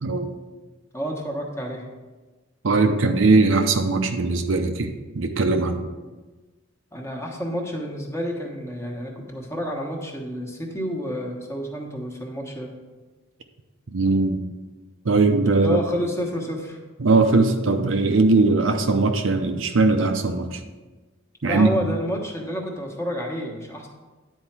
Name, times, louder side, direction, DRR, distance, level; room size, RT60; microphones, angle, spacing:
voice 1, 0.9-1.8 6.9-12.7 15.6-16.8 21.4-23.9, equal, 15° left, 0 dB, 1.2 m, -29 dB
voice 2, 2.6-5.8 13.9-14.4 15.0-15.8 17.0-20.6 21.4-21.7, right 3 dB, 75° right, 5 dB, 0.7 m, -20 dB
9.9 x 4.4 x 6.0 m, 1.2 s
head